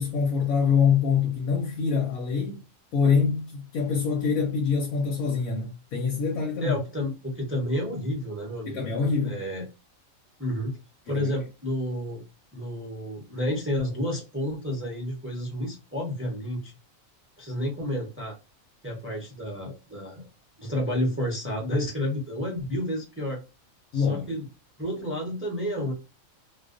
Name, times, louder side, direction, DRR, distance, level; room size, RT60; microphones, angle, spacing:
voice 1, 0.0-2.6 2.9-6.8 8.7-9.4 11.1-11.4 23.9-24.4, left 6 dB, 90° left, 1.1 m, -25 dB
voice 2, 6.6-8.8 9.2-9.6 10.4-10.8 11.1-12.2 12.5-16.7 17.4-18.4 18.8-20.3 20.6-23.4 23.9-24.4 24.8-25.9, left 1 dB, 20° right, 0.4 m, -30 dB
2.3 x 2.2 x 2.4 m
omnidirectional pair, 1.4 m